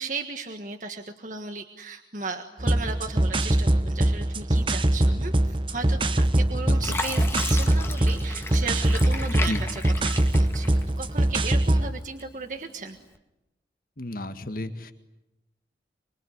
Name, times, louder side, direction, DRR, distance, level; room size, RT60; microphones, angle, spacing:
voice 1, 0.0-13.0, right 4 dB, 45° right, 5 dB, 1.6 m, -36 dB
sound 1, 2.6-11.9, right 1 dB, 30° right, 1.0 m, -23 dB
Fill (with liquid), 6.1-6.4 6.8-11.2 11.6-12.5 13.0-13.2, left 3 dB, 15° left, 1.8 m, -35 dB
voice 2, 6.7-7.0 9.3-9.6 14.0-14.9, left 1 dB, 50° left, 8 dB, 1.9 m, -33 dB
25.0 x 24.5 x 9.7 m, 0.93 s
head